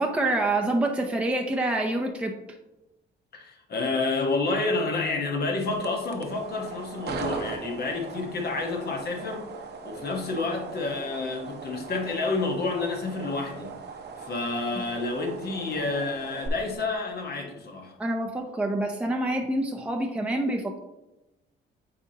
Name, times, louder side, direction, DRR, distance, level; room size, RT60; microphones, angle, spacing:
voice 1, 0.0-2.3 18.0-20.8, right 2 dB, 5° right, 2 dB, 0.6 m, -26 dB
voice 2, 3.3-9.5 9.8-13.7 14.2-17.9, left 3 dB, 55° left, 2 dB, 1.3 m, -29 dB
sound 1, 5.7-16.5, right 5 dB, 60° right, 0.8 m, -39 dB
8.1 x 4.3 x 2.9 m, 0.96 s
cardioid pair, 90°, 20 cm